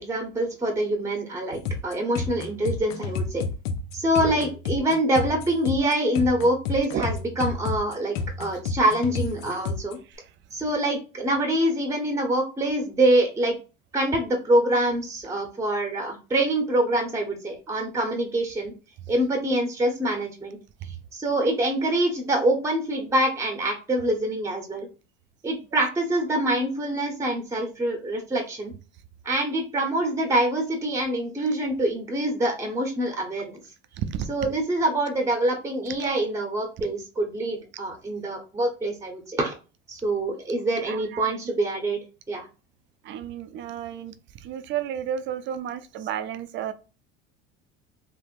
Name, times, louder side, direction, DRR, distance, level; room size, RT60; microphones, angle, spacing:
voice 1, 0.0-3.5 3.9-10.0 10.5-13.5 13.9-18.7 19.1-20.6 21.1-24.9 25.4-28.7 29.2-33.6 34.3-39.5 39.9-42.0 42.3-42.5, right 1 dB, 10° right, 0.8 m, -25 dB
sound 1, 1.6-9.9, left 4 dB, 75° left, 0.6 m, -30 dB
voice 2, 40.9-41.2 43.1-44.1 44.4-46.7, right 9 dB, 40° right, 0.5 m, -32 dB
3.5 x 2.0 x 2.4 m
hypercardioid pair, 90°, 30 cm